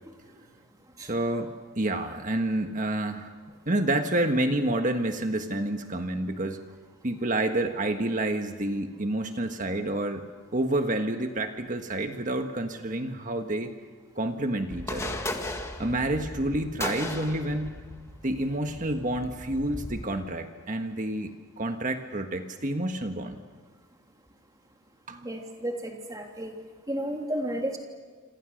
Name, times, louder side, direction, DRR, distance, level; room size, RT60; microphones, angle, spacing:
voice 1, 1.0-3.3 3.6-6.6 7.0-10.2 10.5-13.7 14.1-15.2 15.8-17.9 18.2-21.3 21.6-23.4 25.1-25.3, right 1 dB, 35° right, 6 dB, 1.5 m, -29 dB
sound 1, 14.7-20.0, left 1 dB, 15° left, 1.7 m, -37 dB
voice 2, 25.2-26.5 26.9-27.8, right 1 dB, 15° right, 1 dB, 3.1 m, -32 dB
27.5 x 27.0 x 6.5 m, 1.5 s
head